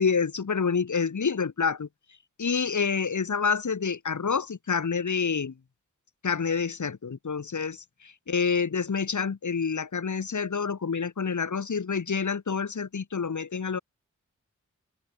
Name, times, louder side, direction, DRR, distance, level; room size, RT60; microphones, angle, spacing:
voice 1, 0.0-1.9 2.4-5.5 6.2-13.8, left 5 dB, 75° left, 2.6 m, -28 dB
open air
wide cardioid pair, 95°, 30 cm